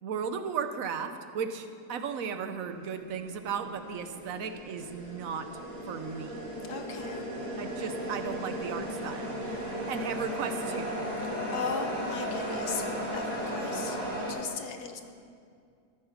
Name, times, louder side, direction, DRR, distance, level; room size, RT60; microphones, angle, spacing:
voice 1, 0.0-5.5 5.9-6.5 7.6-11.0, right 6 dB, 65° right, 8 dB, 1.2 m, -36 dB
sound 1, 2.8-14.3, equal, 85° right, 3.5 m, -35 dB
voice 2, 6.7-7.3 11.5-14.0 14.3-15.0, left 5 dB, 80° left, 6 dB, 1.5 m, -37 dB
13.5 x 9.5 x 5.8 m, 2.3 s
omnidirectional pair, 1.7 m